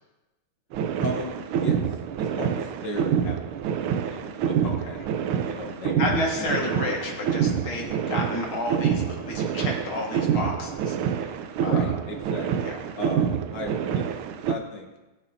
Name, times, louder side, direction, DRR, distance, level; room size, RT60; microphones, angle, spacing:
sound 1, 0.7-14.6, right 8 dB, 80° right, 1.5 m, -27 dB
voice 1, 1.0-1.8 2.2-3.4 4.1-5.0 5.4-5.9 6.4-6.5 11.6-14.1 14.4-14.9, left 2 dB, 60° left, 2 dB, 1.6 m, -36 dB
voice 2, 4.6-5.0 6.0-11.3 11.6-11.9 12.6-12.7, left 2 dB, 75° left, -2 dB, 2.4 m, -31 dB
20.5 x 7.0 x 2.6 m, 1.1 s
omnidirectional pair, 2.3 m